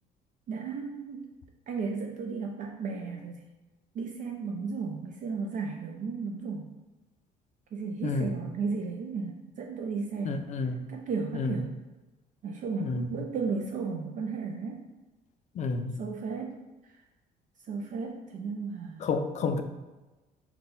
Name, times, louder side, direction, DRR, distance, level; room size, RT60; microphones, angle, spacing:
voice 1, 0.5-1.2 1.7-3.4 4.0-6.7 7.7-10.4 10.9-11.7 12.4-14.8 16.0-16.6 17.7-19.1, right 4 dB, 50° right, 1 dB, 0.4 m, -34 dB
voice 2, 8.0-8.4 10.2-10.8 11.3-11.6 12.8-13.2 15.6-16.0 19.0-19.6, left 4 dB, 45° left, 8 dB, 0.4 m, -30 dB
3.9 x 2.2 x 3.9 m, 1.1 s
cardioid pair, 110°, 17 cm